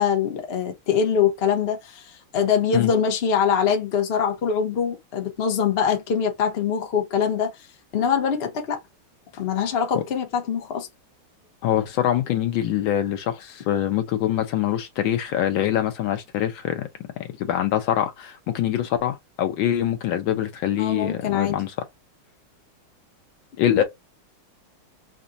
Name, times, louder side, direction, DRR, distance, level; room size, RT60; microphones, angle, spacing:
voice 1, 0.0-7.6 7.9-8.8 9.3-10.9 20.8-21.5 23.8-23.9, left 7 dB, 45° left, 0.8 m, -23 dB
voice 2, 11.6-16.9 17.2-21.7 23.6-23.8, left 11 dB, 75° left, 1.4 m, -24 dB
5.1 x 2.4 x 2.6 m
omnidirectional pair, 2.3 m